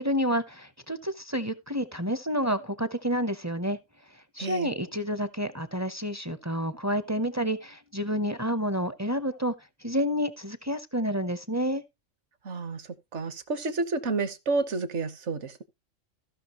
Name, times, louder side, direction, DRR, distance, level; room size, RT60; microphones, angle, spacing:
voice 1, 0.0-3.8 4.1-9.5 9.8-11.8, equal, 20° right, 0.5 m, -29 dB
voice 2, 4.4-4.7 12.4-15.6, right 3 dB, 65° right, 1.5 m, -30 dB
15.5 x 6.0 x 3.0 m
omnidirectional pair, 1.3 m